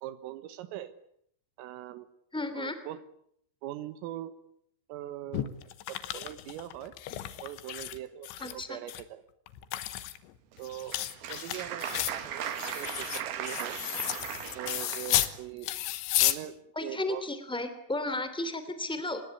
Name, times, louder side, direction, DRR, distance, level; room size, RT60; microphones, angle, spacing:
voice 1, 0.0-0.9 1.6-2.1 2.5-3.0 3.6-4.3 4.9-5.6 5.9-6.9 7.4-9.2 10.6-11.0 11.3-13.8 14.6-15.7 16.2-17.2, right 13 dB, 85° right, 12 dB, 3.9 m, -41 dB
voice 2, 2.3-2.7 8.4-8.8 16.7-19.2, left 2 dB, ahead, 10 dB, 1.3 m, -33 dB
sound 1, 5.3-8.0 8.2-9.0 9.5-15.4 15.6-16.4, left 14 dB, 70° left, 3.2 m, -33 dB
Applause, 10.5-15.4, right 9 dB, 60° right, 3.3 m, -38 dB
25.5 x 21.5 x 9.7 m, 0.70 s
omnidirectional pair, 5.8 m